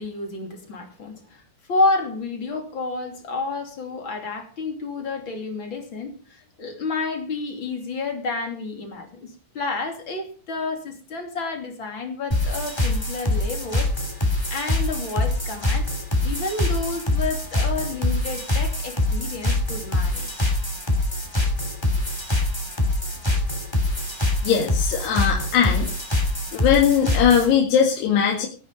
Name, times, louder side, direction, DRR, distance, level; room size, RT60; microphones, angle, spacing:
voice 1, 0.0-1.4 1.7-13.9 14.2-15.9 16.2-20.5, left 3 dB, 35° left, 3 dB, 3.1 m, -30 dB
sound 1, 12.3-27.5, left 2 dB, 10° left, 2.1 m, -24 dB
voice 2, 24.4-25.9 26.5-28.5, left 8 dB, 85° left, -1 dB, 4.0 m, -19 dB
18.5 x 9.8 x 5.2 m, 0.40 s
omnidirectional pair, 4.6 m